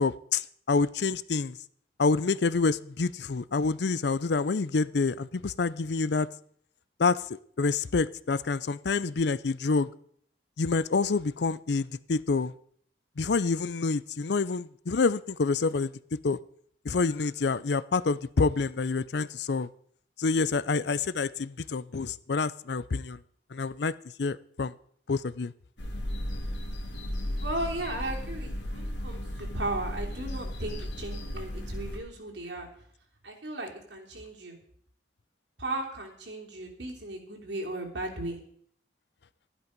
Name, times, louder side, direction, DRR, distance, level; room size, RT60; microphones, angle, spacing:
voice 1, 0.0-1.6 2.0-6.3 7.0-7.2 7.6-9.9 10.6-12.5 13.2-15.9 16.2-16.4 16.8-19.7 20.2-23.2 23.5-23.9 24.2-24.7 25.1-25.5, left 4 dB, 70° left, 18 dB, 0.5 m, -27 dB
sound 1, 25.8-32.0, equal, 85° left, 2.3 m, -35 dB
voice 2, 27.4-32.8 33.2-34.6 35.6-38.4, right 1 dB, 80° right, 0 dB, 3.4 m, -36 dB
12.5 x 11.0 x 5.2 m, 0.62 s
head